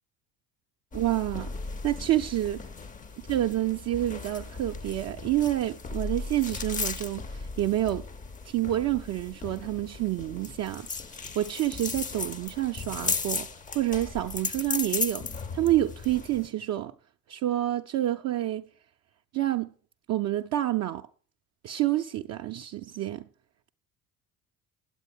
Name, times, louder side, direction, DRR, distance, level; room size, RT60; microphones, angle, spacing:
sound 1, 0.9-16.5, left 4 dB, 20° left, 0.6 m, -36 dB
voice 1, 0.9-1.5 1.8-2.6 3.3-8.1 8.5-10.9 11.4-13.5 13.7-15.3 15.5-16.9 17.3-18.6 19.3-19.7 20.1-21.1 21.6-23.3, right 14 dB, 35° right, 0.5 m, -28 dB
9.1 x 8.2 x 6.6 m
figure-of-eight pair, 55°, 45 cm